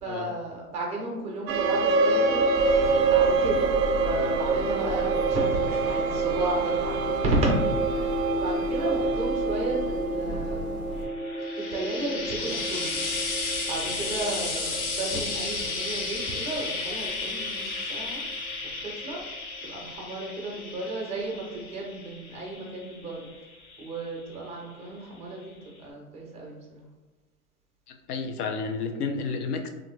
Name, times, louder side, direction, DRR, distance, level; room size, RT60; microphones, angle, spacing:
voice 1, 0.0-2.5 3.1-10.7 11.6-13.1 13.4-18.2 18.8-19.2 19.6-23.3 23.8-25.5 25.8-26.8, right 1 dB, 15° right, -2 dB, 0.4 m, -33 dB
sound 1, 1.5-16.2, right 4 dB, 65° right, 0.5 m, -26 dB
sound 2, 2.5-11.1, left 1 dB, 55° left, 0.9 m, -37 dB
Frying (food), 11.0-24.5 25.4-25.5, left 3 dB, 35° left, 0.6 m, -34 dB
voice 2, 27.9-29.7, left 4 dB, 80° left, 5 dB, 0.6 m, -31 dB
2.9 x 2.4 x 2.6 m, 1.3 s
hypercardioid pair, 120°, 45 cm